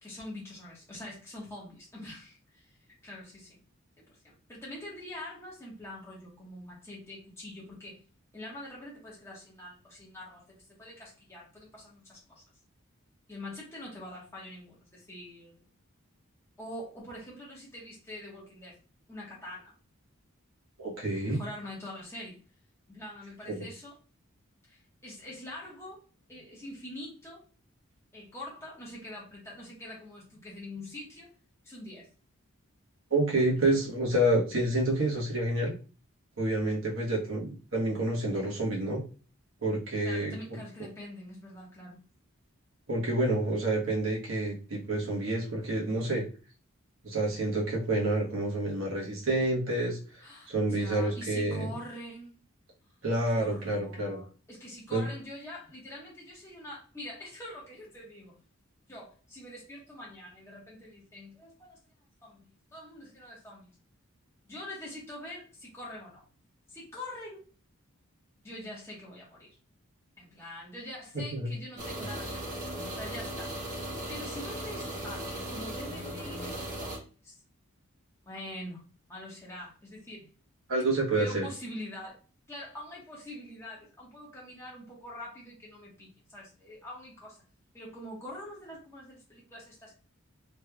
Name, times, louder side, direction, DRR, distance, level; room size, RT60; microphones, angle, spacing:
voice 1, 0.0-2.8 3.0-3.6 4.0-8.0 8.3-12.4 13.3-15.6 16.6-18.8 19.1-19.7 21.2-22.4 22.9-23.9 24.7-26.0 26.3-27.4 28.1-31.3 31.6-32.1 40.0-42.0 50.2-52.4 53.3-58.4 58.9-61.8 62.2-63.7 64.4-66.2 66.7-67.4 68.4-69.6 70.2-72.6 73.0-73.5 74.1-77.4 78.3-80.3 81.1-82.2 82.5-87.4 87.7-89.9, left 1 dB, 15° left, -5 dB, 1.2 m, -44 dB
voice 2, 20.8-21.4 23.5-23.6 33.1-35.7 36.4-39.0 39.6-40.6 42.9-46.2 47.0-50.0 50.5-51.7 53.0-54.2 54.9-55.1 71.3-71.5 80.7-81.4, right 1 dB, 70° right, -3 dB, 1.2 m, -28 dB
sound 1, 71.8-77.0, right 1 dB, 35° right, 1.5 m, -37 dB
3.3 x 3.2 x 2.3 m, 0.37 s
head